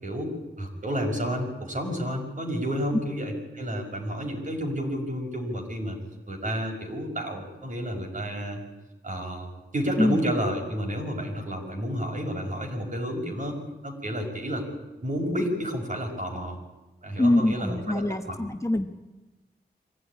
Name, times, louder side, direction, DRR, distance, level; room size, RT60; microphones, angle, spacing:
voice 1, 0.0-6.0 6.3-8.6 9.0-13.6 13.8-14.6 15.0-16.6 17.0-18.4, equal, 45° right, 2 dB, 5.9 m, -30 dB
voice 2, 17.2-18.9, left 1 dB, 15° left, 5 dB, 1.2 m, -24 dB
24.5 x 16.0 x 9.9 m, 1.1 s
wide cardioid pair, 140°, 18 cm